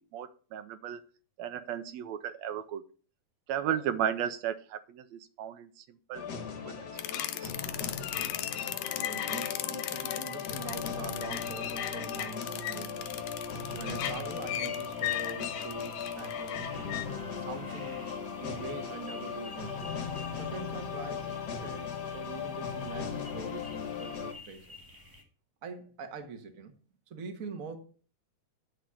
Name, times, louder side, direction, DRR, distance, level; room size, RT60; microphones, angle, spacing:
voice 1, 0.1-1.0 1.4-2.8 3.5-5.8 6.1-6.2 6.7-6.8 7.1-7.5, right 9 dB, 75° right, 1.8 m, -34 dB
sound 1, 6.1-24.3, left 6 dB, 50° left, 1.3 m, -38 dB
sound 2, 7.0-17.1, left 12 dB, 80° left, 1.9 m, -36 dB
voice 2, 8.9-13.3 13.7-17.0 17.4-18.1 18.4-19.9 20.3-24.7 25.6-26.8 27.1-27.8, right 5 dB, 40° right, 1.2 m, -44 dB
sound 3, 13.0-25.2, left 1 dB, 10° right, 1.5 m, -52 dB
9.3 x 6.4 x 5.7 m
omnidirectional pair, 3.4 m